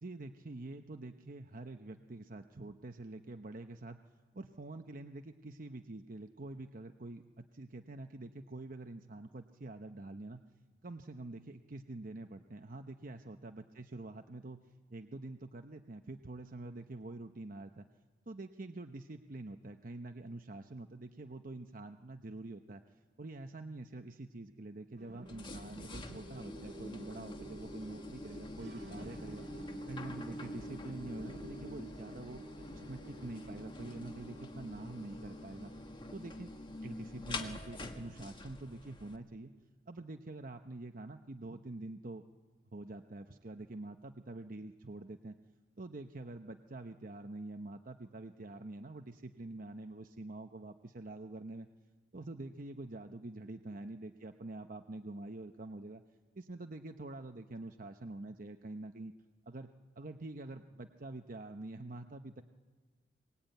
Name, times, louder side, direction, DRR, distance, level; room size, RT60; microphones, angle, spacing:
voice 1, 0.0-4.0 4.3-10.4 10.8-14.6 14.9-17.9 18.3-22.8 23.2-29.4 29.9-32.4 32.7-35.7 36.1-36.5 36.8-39.5 39.9-42.2 42.7-45.3 45.8-51.7 52.1-56.0 56.4-59.1 59.5-59.7 60.0-62.4, right 2 dB, 50° right, 6 dB, 0.9 m, -46 dB
sound 1, 25.0-39.6, right 1 dB, 80° right, 2.2 m, -53 dB
sound 2, 25.3-39.2, left 1 dB, 30° left, 1.8 m, -46 dB
23.0 x 22.0 x 9.1 m, 1.4 s
head